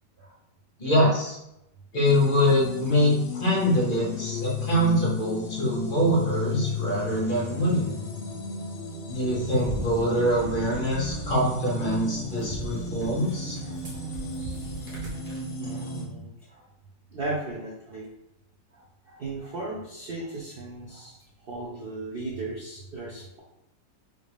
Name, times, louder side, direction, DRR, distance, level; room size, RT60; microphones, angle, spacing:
voice 1, 0.8-1.3 1.9-7.8 9.1-13.5, equal, 40° left, -5 dB, 0.9 m, -24 dB
sound 1, 2.0-16.1, left 3 dB, 70° left, 1.1 m, -34 dB
sound 2, 9.1-15.5, equal, 40° right, 0.9 m, -40 dB
voice 2, 13.6-14.1 14.8-14.9 15.6-16.7 17.1-18.1 18.7-23.4, right 2 dB, 85° right, -4 dB, 0.5 m, -37 dB
3.7 x 2.4 x 3.3 m, 0.85 s
omnidirectional pair, 1.7 m